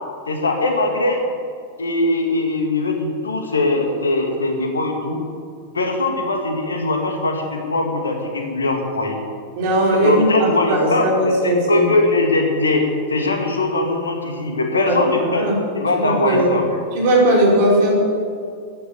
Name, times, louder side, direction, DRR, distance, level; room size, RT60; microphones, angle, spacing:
voice 1, 0.3-1.2 1.8-5.2 5.7-9.2 10.0-12.8 13.1-15.5 15.7-16.6, left 2 dB, 75° left, 3 dB, 2.2 m, -21 dB
voice 2, 9.5-11.9 14.8-15.0 15.2-15.6 16.0-16.6 16.9-17.9, right 1 dB, 50° right, -3 dB, 4.9 m, -17 dB
14.0 x 10.0 x 7.9 m, 2.3 s
figure-of-eight pair, 90°, 0 cm